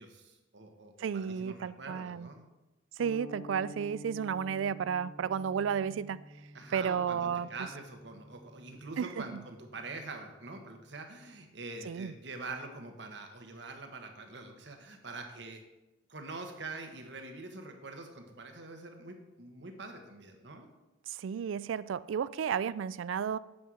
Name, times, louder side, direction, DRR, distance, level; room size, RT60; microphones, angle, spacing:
voice 1, 0.0-2.4 6.5-15.6 16.1-20.7, right 3 dB, 65° right, 5 dB, 1.3 m, -45 dB
voice 2, 1.0-2.3 3.0-6.2 6.7-7.5 9.0-9.4 11.9-12.1 21.1-23.4, right 7 dB, 85° right, 18 dB, 0.3 m, -33 dB
sound 1, 3.0-11.4, left 1 dB, 50° left, 1.8 m, -51 dB
8.7 x 5.6 x 6.3 m, 1.0 s
head